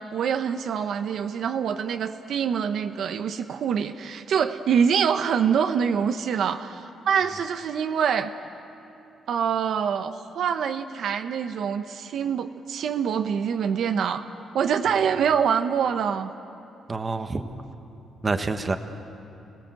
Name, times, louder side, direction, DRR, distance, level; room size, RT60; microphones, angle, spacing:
voice 1, 0.0-8.3 9.3-14.3 14.5-16.3, right 7 dB, 70° right, 7 dB, 0.9 m, -25 dB
voice 2, 16.9-17.5 18.2-18.8, right 3 dB, 25° right, 7 dB, 1.4 m, -27 dB
30.0 x 19.0 x 7.7 m, 2.8 s
cardioid pair, 120°, 0 cm